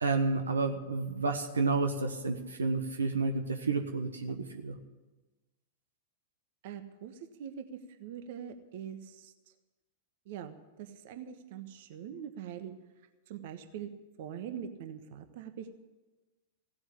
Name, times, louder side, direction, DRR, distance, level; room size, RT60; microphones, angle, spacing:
voice 1, 0.0-4.8, right 3 dB, 80° right, 6 dB, 1.2 m, -30 dB
voice 2, 6.6-7.6 8.0-9.3 10.3-12.7 13.3-13.9 14.2-15.7, right 9 dB, 55° right, 9 dB, 1.2 m, -43 dB
16.5 x 7.9 x 9.8 m, 1.2 s
figure-of-eight pair, 95°, 0 cm